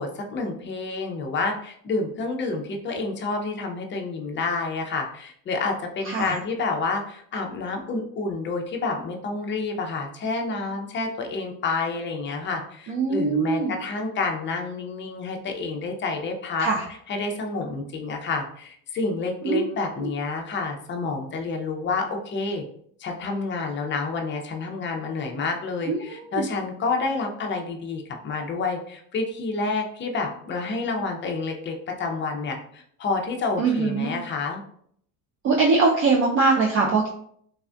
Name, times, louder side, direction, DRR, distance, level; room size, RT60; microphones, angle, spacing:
voice 1, 0.0-16.7 17.1-22.6 23.0-34.6, left 3 dB, 25° left, 3 dB, 0.5 m, -29 dB
voice 2, 6.0-6.4 12.9-13.7 16.6-16.8 19.4-20.1 25.9-26.4 33.6-34.1 35.4-37.1, right 4 dB, 30° right, -1 dB, 0.4 m, -22 dB
3.4 x 2.4 x 2.2 m, 0.65 s
supercardioid pair, 95°, 44 cm